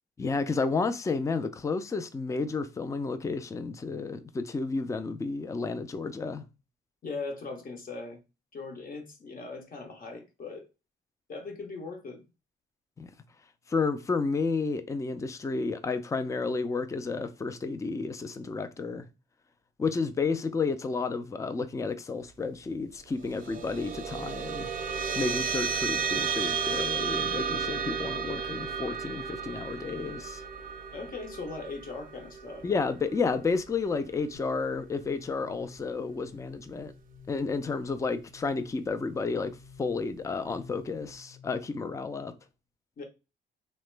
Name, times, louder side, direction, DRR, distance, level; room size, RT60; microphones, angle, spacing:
voice 1, 0.2-6.4 13.0-13.1 13.7-19.1 19.8-24.7 25.2-30.4 32.6-36.9 37.3-42.3, left 4 dB, 15° left, 0.4 m, -31 dB
voice 2, 7.0-8.2 8.5-10.7 11.3-12.2 30.9-32.7 43.0-43.1, left 3 dB, 45° left, 0.8 m, -39 dB
sound 1, 23.2-34.0, right 6 dB, 45° right, 0.5 m, -33 dB
sound 2, 34.3-41.9, left 5 dB, 85° left, 0.7 m, -52 dB
2.9 x 2.1 x 3.2 m
cardioid pair, 90°, 20 cm